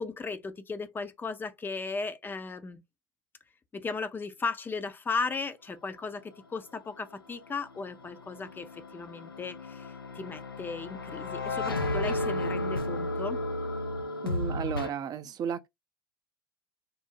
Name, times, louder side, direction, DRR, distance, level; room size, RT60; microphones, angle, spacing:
voice 1, 0.0-2.8 3.7-13.4, left 4 dB, 15° left, 0.5 m, -36 dB
sound 1, 7.5-14.9, left 1 dB, 85° left, 0.5 m, -33 dB
voice 2, 14.2-15.7, right 8 dB, 35° right, 0.5 m, -34 dB
3.6 x 2.0 x 2.9 m
figure-of-eight pair, 75°, 12 cm